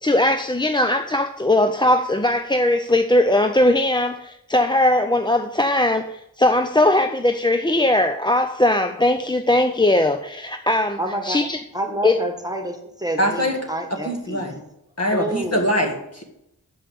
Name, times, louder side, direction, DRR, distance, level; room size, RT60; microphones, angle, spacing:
voice 1, 0.0-11.6 12.0-12.2, left 1 dB, 15° left, 7 dB, 0.5 m, -19 dB
voice 2, 11.0-11.4 11.7-14.5 15.1-15.7, right 1 dB, 10° right, 3 dB, 1.5 m, -28 dB
voice 3, 13.2-13.6 13.9-14.6 15.0-16.2, equal, 45° left, 1 dB, 2.1 m, -23 dB
6.8 x 5.6 x 6.9 m, 0.80 s
wide cardioid pair, 50°, 36 cm